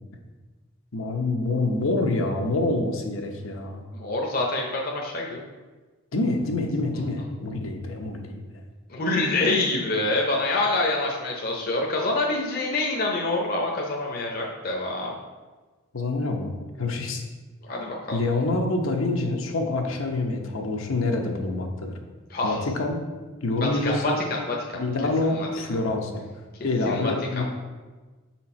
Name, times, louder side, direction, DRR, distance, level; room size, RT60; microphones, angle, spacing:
voice 1, 0.9-3.8 6.1-8.4 15.9-17.2 18.1-22.0 22.4-23.0 23.4-24.2 24.8-26.2 26.6-27.4, left 2 dB, 80° left, 2 dB, 0.9 m, -26 dB
voice 2, 3.9-5.4 8.9-15.1 17.7-18.2 22.3-22.6 23.6-24.8 25.2-25.5 26.9-27.4, left 2 dB, 45° left, -1 dB, 0.8 m, -26 dB
6.3 x 4.4 x 4.3 m, 1.3 s
head